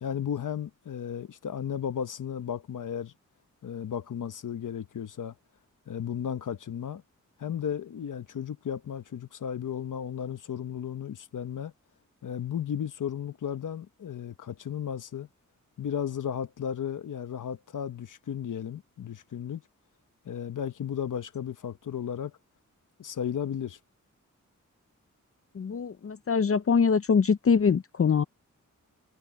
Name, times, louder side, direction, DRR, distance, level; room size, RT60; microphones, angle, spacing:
voice 1, 0.0-3.1 3.6-5.3 5.9-7.0 7.4-11.7 12.2-15.3 15.8-19.6 20.2-22.3 23.0-23.8, left 8 dB, 85° left, 1.2 m, -34 dB
voice 2, 25.6-28.2, left 6 dB, 45° left, 0.7 m, -23 dB
wide cardioid pair, 90°, 30 cm